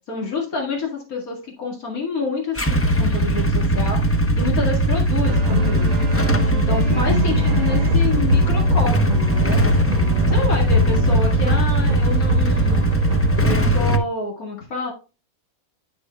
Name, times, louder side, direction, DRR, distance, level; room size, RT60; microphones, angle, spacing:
voice 1, 0.1-6.0 6.7-9.6 10.3-12.8 13.4-14.9, left 3 dB, 80° left, -1 dB, 2.4 m, -28 dB
Motorcycle / Engine starting / Idling, 2.5-14.0, right 1 dB, 20° left, 0.4 m, -19 dB
sound 1, 5.2-13.6, left 1 dB, 65° right, 1.6 m, -24 dB
11.0 x 6.5 x 2.3 m, 0.31 s
omnidirectional pair, 1.5 m